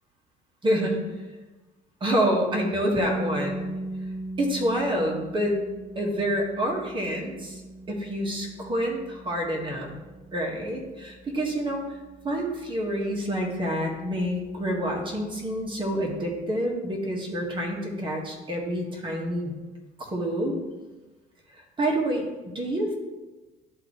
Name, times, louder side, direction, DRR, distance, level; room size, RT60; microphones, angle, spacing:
voice 1, 0.6-1.0 2.0-3.7 4.4-5.6 5.9-7.6 7.9-9.9 10.3-12.0 12.2-19.5 20.0-20.6 21.6-22.3 22.5-22.9, equal, 30° right, -1 dB, 1.7 m, -27 dB
sound 1, 3.0-14.8, right 1 dB, 5° left, 0.5 m, -39 dB
11.5 x 3.9 x 3.1 m, 1.2 s
cardioid pair, 110°, 17 cm